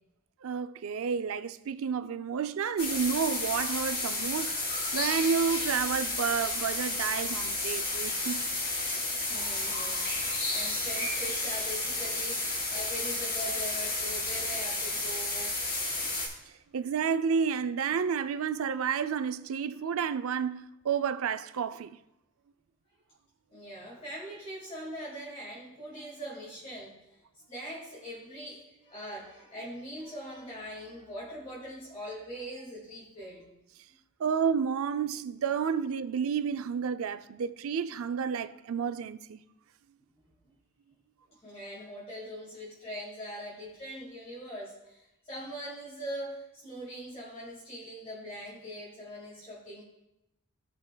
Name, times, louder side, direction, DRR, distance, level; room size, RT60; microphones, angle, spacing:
voice 1, 0.4-4.6 4.9-8.4 16.7-22.0 34.2-39.4, right 6 dB, 65° right, 0.4 m, -30 dB
sound 1, 2.8-16.3, left 2 dB, 45° left, 2.5 m, -32 dB
voice 2, 9.3-15.5 23.5-27.2 27.5-33.5 41.3-49.8, equal, 30° left, 2.0 m, -42 dB
17.0 x 5.7 x 2.2 m
head